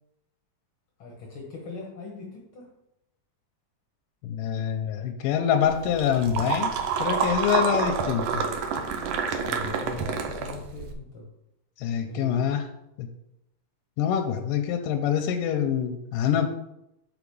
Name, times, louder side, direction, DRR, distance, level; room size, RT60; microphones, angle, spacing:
voice 1, 1.0-2.7 9.4-11.3 12.1-12.5, left 3 dB, 60° left, -1 dB, 1.4 m, -40 dB
voice 2, 4.2-6.7 7.0-8.5 11.8-12.7 13.0-13.1 14.0-16.5, left 8 dB, 85° left, 5 dB, 2.2 m, -25 dB
sound 1, 5.6-10.9, right 6 dB, 80° right, 1.5 m, -28 dB
6.0 x 4.9 x 5.3 m, 0.83 s
omnidirectional pair, 3.9 m